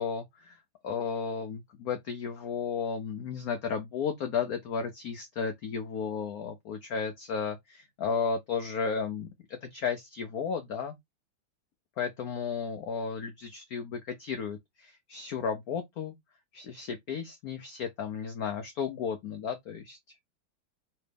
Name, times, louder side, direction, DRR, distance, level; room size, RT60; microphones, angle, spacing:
voice 1, 0.0-11.0 12.0-16.1 16.5-20.2, left 6 dB, 90° left, 0.7 m, -34 dB
3.2 x 2.9 x 3.2 m
omnidirectional pair, 2.2 m